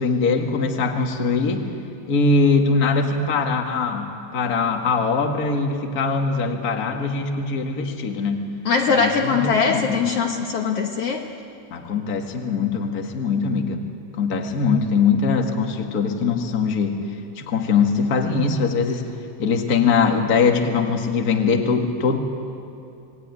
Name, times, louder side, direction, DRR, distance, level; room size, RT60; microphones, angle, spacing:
voice 1, 0.0-1.7 2.1-8.5 8.9-10.0 11.7-13.8 14.1-19.1 19.4-22.2, left 4 dB, 35° left, 3 dB, 1.9 m, -22 dB
voice 2, 8.7-11.2, left 5 dB, 60° left, 2 dB, 2.1 m, -21 dB
27.0 x 20.0 x 9.7 m, 2.6 s
omnidirectional pair, 3.3 m